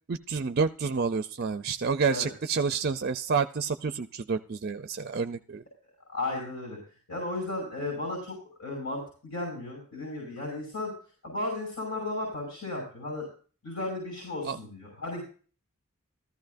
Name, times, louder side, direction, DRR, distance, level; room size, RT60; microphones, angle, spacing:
voice 1, 0.1-5.6 14.4-14.6, right 5 dB, 45° right, 11 dB, 0.4 m, -29 dB
voice 2, 6.1-6.8 7.1-10.9 11.2-13.3 13.6-15.2, left 2 dB, 75° left, -1 dB, 5.6 m, -34 dB
14.5 x 14.0 x 2.6 m, 0.39 s
head